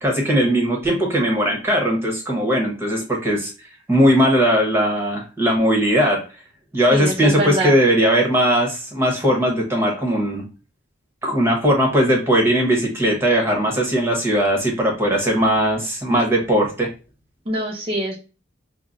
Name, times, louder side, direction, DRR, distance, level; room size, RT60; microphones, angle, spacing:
voice 1, 0.0-3.5 3.9-6.2 6.7-10.4 11.2-16.9, equal, 15° right, 0 dB, 1.0 m, -19 dB
voice 2, 6.9-7.8 17.5-18.2, right 1 dB, 30° right, -1 dB, 0.6 m, -24 dB
5.4 x 2.0 x 2.5 m, 0.32 s
head